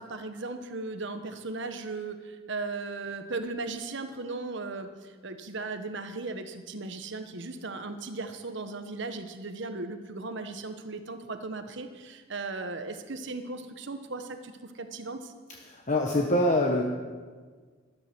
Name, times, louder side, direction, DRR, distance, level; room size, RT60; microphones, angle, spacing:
voice 1, 0.0-15.3, right 3 dB, 60° right, 8 dB, 1.2 m, -37 dB
voice 2, 15.7-16.8, left 1 dB, 35° left, 0 dB, 1.2 m, -24 dB
13.5 x 12.0 x 6.1 m, 1.5 s
head